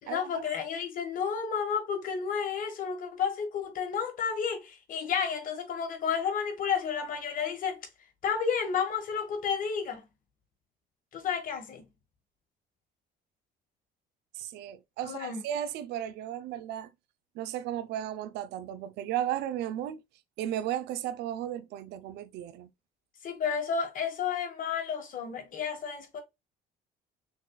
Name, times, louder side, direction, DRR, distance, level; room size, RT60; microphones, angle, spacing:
voice 1, 0.0-7.8 8.2-10.0 11.1-11.8 15.0-15.4 23.2-26.2, left 6 dB, 55° left, 1.3 m, -31 dB
voice 2, 14.4-16.9 17.4-20.0 20.4-22.7, right 11 dB, 85° right, 0.5 m, -35 dB
6.1 x 2.4 x 2.2 m
cardioid pair, 110°, 17 cm